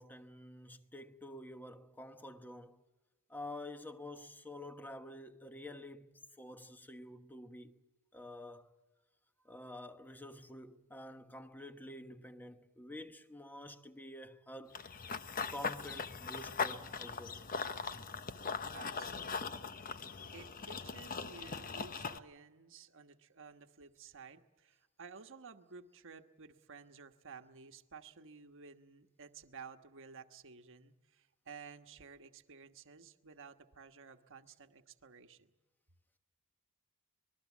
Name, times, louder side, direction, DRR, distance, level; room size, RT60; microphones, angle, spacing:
voice 1, 0.0-2.8 3.3-7.8 8.1-8.7 9.4-14.8 15.5-17.4, left 1 dB, 10° left, 1.1 m, -49 dB
Run / Bird vocalization bird call bird song, 14.7-22.2, left 5 dB, 40° left, 1.0 m, -40 dB
voice 2, 18.7-19.9 20.3-35.5, right 5 dB, 60° right, 1.3 m, -54 dB
25.5 x 21.0 x 7.3 m
head